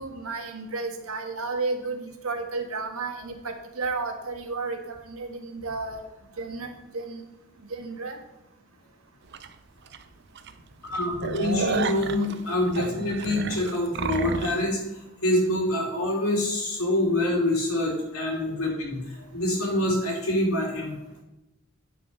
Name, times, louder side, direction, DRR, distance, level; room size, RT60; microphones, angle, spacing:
voice 1, 0.0-6.0 6.4-7.2 7.6-8.2, right 3 dB, 90° right, 4 dB, 1.6 m, -32 dB
sound 1, 9.3-9.5 9.9-10.0 10.4-10.5 10.8-14.6, right 4 dB, 55° right, 0.6 m, -31 dB
voice 2, 10.9-14.8 15.2-20.9, left 1 dB, 90° left, -3 dB, 3.1 m, -26 dB
9.4 x 6.3 x 5.7 m, 0.97 s
head